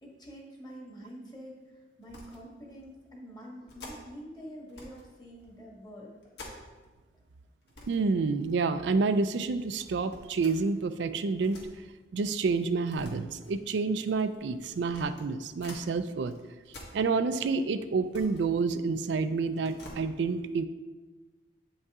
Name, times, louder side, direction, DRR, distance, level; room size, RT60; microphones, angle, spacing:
voice 1, 0.0-6.1, equal, 25° left, -2 dB, 1.4 m, -46 dB
sound 1, 2.0-2.4 2.8-2.9 3.7-4.2 4.7-5.1 5.4-6.9 7.2-7.3 7.6-8.0 8.4-9.0 9.8-11.7 12.5-15.9 16.2-17.5 17.8-19.1 19.5-20.0, left 2 dB, 65° left, 1.6 m, -50 dB
voice 2, 7.9-11.6 12.1-16.4 16.9-20.6, right 4 dB, 80° right, 11 dB, 0.4 m, -29 dB
8.1 x 5.4 x 3.6 m, 1.3 s
head